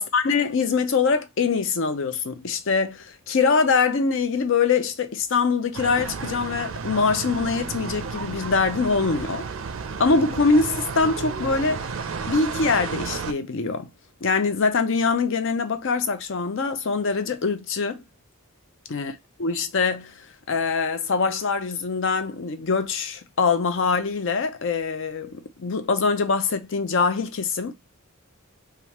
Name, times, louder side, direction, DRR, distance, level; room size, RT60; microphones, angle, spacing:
voice 1, 0.0-9.4 10.0-11.9 12.3-13.9 14.2-18.0 18.9-19.1 19.4-20.1 20.5-27.7, left 4 dB, 60° left, 0.5 m, -23 dB
sound 1, 5.7-13.3, right 5 dB, 60° right, 0.4 m, -32 dB
3.3 x 2.4 x 2.9 m
head